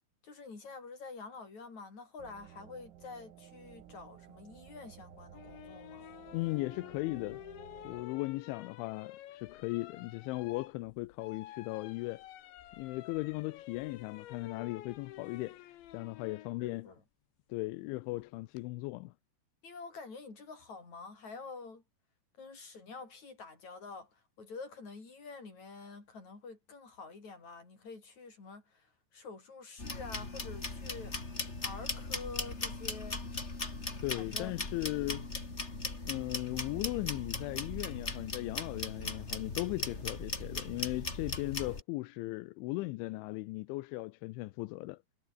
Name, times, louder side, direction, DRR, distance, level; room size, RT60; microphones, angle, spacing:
voice 1, 0.2-6.1 16.6-17.0 19.6-21.8 22.4-31.2 31.6-33.2 34.1-34.6, left 4 dB, 35° left, 7.7 m, -48 dB
sound 1, 2.2-8.0, right 11 dB, 85° right, 5.1 m, -55 dB
sound 2, 5.3-16.5 18.2-18.6, left 13 dB, 70° left, 3.6 m, -50 dB
voice 2, 6.3-7.4 7.8-12.2 12.8-15.6 15.9-16.9 17.5-19.1 34.0-35.3 36.1-45.0, left 21 dB, 85° left, 2.8 m, -37 dB
sound 3, 29.8-41.8, left 3 dB, 15° left, 2.7 m, -39 dB
omnidirectional pair, 5.9 m